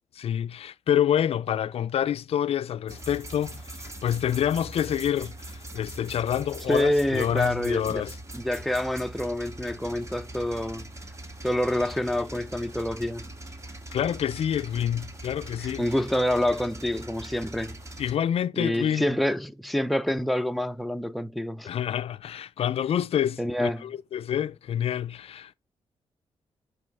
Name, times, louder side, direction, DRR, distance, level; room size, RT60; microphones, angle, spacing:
voice 1, 0.2-8.2 13.9-15.9 18.0-19.1 21.6-25.5, left 10 dB, 70° left, 0.4 m, -27 dB
sound 1, 2.9-18.1, right 1 dB, 30° right, 1.4 m, -42 dB
voice 2, 6.7-8.0 8.3-10.9 11.4-13.3 15.6-17.8 18.6-21.7 23.4-23.8, left 1 dB, ahead, 0.5 m, -27 dB
9.6 x 4.8 x 3.3 m
cardioid pair, 95°, 11 cm